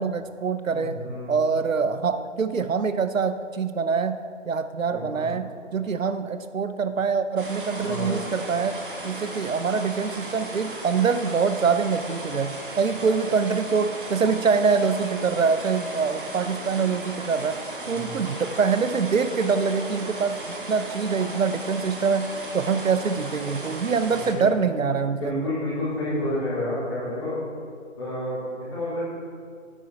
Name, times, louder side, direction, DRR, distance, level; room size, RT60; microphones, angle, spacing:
voice 1, 0.0-1.0 1.3-4.2 4.5-8.8 9.0-17.6 17.9-22.3 22.5-25.5, right 5 dB, 85° right, 10 dB, 0.9 m, -24 dB
voice 2, 0.7-1.3 4.8-5.3 7.8-8.2 17.8-18.2 24.2-24.8 25.2-27.4 28.0-29.1, left 1 dB, 20° left, -9 dB, 3.5 m, -30 dB
sound 1, 7.4-24.3, right 2 dB, 40° right, 1.6 m, -36 dB
12.5 x 9.4 x 4.6 m, 2.1 s
hypercardioid pair, 175°, 38 cm